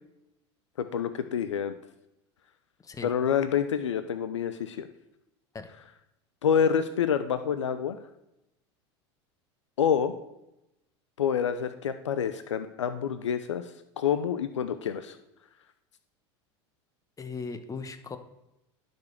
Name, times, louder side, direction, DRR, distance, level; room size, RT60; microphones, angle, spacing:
voice 1, 0.8-1.8 3.0-4.9 6.4-8.0 9.8-10.1 11.2-15.2, left 8 dB, 85° left, 11 dB, 0.6 m, -27 dB
voice 2, 17.2-18.2, left 4 dB, 25° left, 9 dB, 1.1 m, -38 dB
10.5 x 5.3 x 6.5 m, 0.88 s
hypercardioid pair, 85°, 15 cm